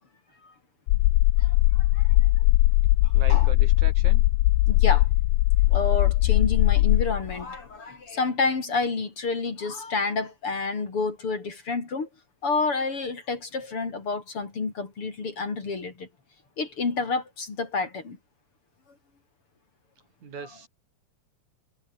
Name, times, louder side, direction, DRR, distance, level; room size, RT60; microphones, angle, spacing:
sound 1, 0.9-7.4, left 18 dB, 85° left, 2.3 m, -20 dB
voice 1, 1.4-2.1 3.0-3.5 4.7-5.1 5.7-12.1 12.4-16.1 16.6-18.2, left 4 dB, 45° left, 4.2 m, -29 dB
voice 2, 3.1-4.2 20.2-20.7, right 5 dB, 65° right, 5.0 m, -39 dB
omnidirectional pair, 3.7 m